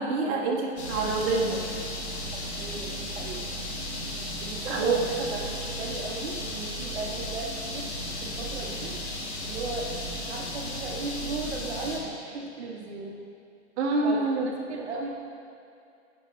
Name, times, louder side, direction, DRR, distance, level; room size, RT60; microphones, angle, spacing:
voice 1, 0.0-1.6 4.7-5.0 13.8-14.5, right 3 dB, 40° right, -2 dB, 1.2 m, -26 dB
sound 1, 0.8-12.0, left 1 dB, 80° left, 1.4 m, -35 dB
voice 2, 2.2-3.5 4.4-7.9 8.2-9.0 9.4-9.9 10.3-13.2 14.0-15.1, right 3 dB, 85° right, 0 dB, 0.9 m, -36 dB
9.7 x 5.3 x 3.1 m, 2.4 s
hypercardioid pair, 110°, 32 cm